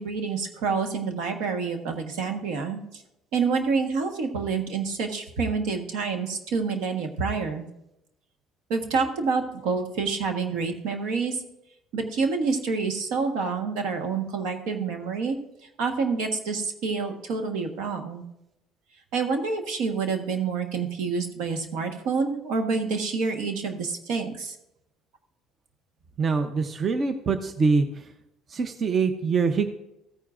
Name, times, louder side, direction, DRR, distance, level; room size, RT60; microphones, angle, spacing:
voice 1, 0.0-3.0 3.3-7.7 8.7-11.4 11.9-15.4 15.8-18.2 19.1-24.5, right 4 dB, 80° right, 5 dB, 1.3 m, -27 dB
voice 2, 26.2-28.1 28.5-29.7, right 4 dB, 40° right, 8 dB, 0.7 m, -24 dB
15.5 x 9.2 x 2.5 m, 0.86 s
cardioid pair, 105°, 0 cm